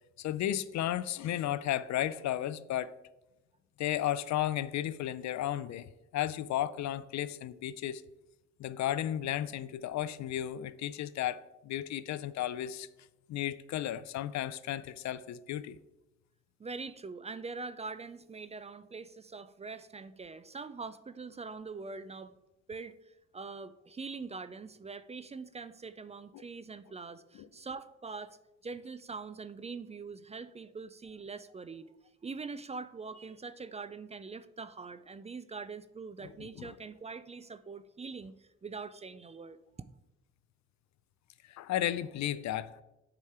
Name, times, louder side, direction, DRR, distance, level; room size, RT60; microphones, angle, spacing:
voice 1, 0.2-2.9 3.8-8.0 8.6-12.9 13.3-15.8 26.3-26.4 27.3-27.5 36.2-36.7 41.5-42.7, left 12 dB, 65° left, 0.5 m, -34 dB
voice 2, 16.6-22.4 22.7-28.4 28.6-31.9 32.2-39.6, right 4 dB, 20° right, 0.4 m, -43 dB
8.2 x 5.0 x 4.3 m
cardioid pair, 90°, 30 cm